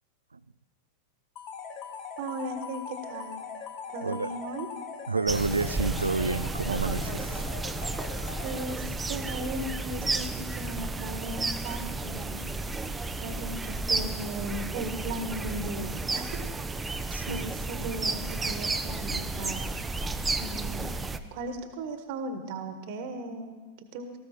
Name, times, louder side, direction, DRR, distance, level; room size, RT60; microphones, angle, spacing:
sound 1, 1.4-9.1, left 6 dB, 40° left, 1.8 m, -41 dB
voice 1, 2.2-3.4 3.9-4.7 8.4-12.4 13.2-16.5 16.8-17.0 17.3-19.7 20.3-21.0 21.3-24.2, right 1 dB, 50° right, 8 dB, 1.5 m, -37 dB
voice 2, 5.1-7.5 17.1-17.5, right 3 dB, 80° right, 18 dB, 0.4 m, -30 dB
sound 2, 5.3-21.2, right 3 dB, 10° right, 0.8 m, -32 dB
18.0 x 15.0 x 4.4 m, 1.4 s
figure-of-eight pair, 90°, 0 cm